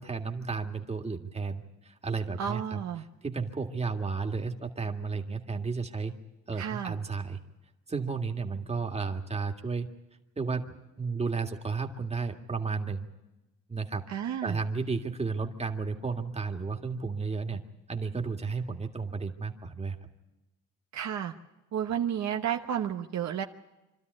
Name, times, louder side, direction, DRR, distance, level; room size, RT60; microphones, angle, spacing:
voice 1, 0.0-2.8 3.2-6.1 6.5-7.4 7.9-9.9 10.4-13.1 13.7-14.0 14.4-17.6 17.9-20.0, right 4 dB, 20° right, 4 dB, 2.0 m, -33 dB
voice 2, 2.4-3.1 6.5-6.9 14.1-14.6 20.9-21.3 21.7-23.4, right 9 dB, 65° right, 4 dB, 1.1 m, -32 dB
26.0 x 13.0 x 9.6 m, 1.0 s
cardioid pair, 90°, 30 cm